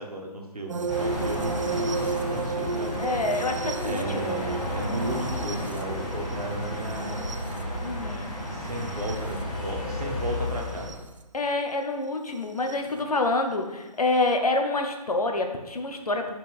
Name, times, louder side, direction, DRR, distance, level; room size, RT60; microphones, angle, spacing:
voice 1, 0.0-3.1 3.8-7.3 8.5-11.1, right 1 dB, 65° right, 1 dB, 1.5 m, -35 dB
sound 1, 0.7-9.4 10.7-11.0 12.7-12.8, right 4 dB, 50° right, 0.6 m, -34 dB
sound 2, 0.9-10.9, left 1 dB, 10° left, 1.3 m, -32 dB
voice 2, 3.0-4.5 7.8-8.3 11.3-16.4, left 2 dB, 65° left, 4 dB, 1.2 m, -27 dB
5.4 x 5.3 x 4.6 m, 1.1 s
figure-of-eight pair, 150°, 21 cm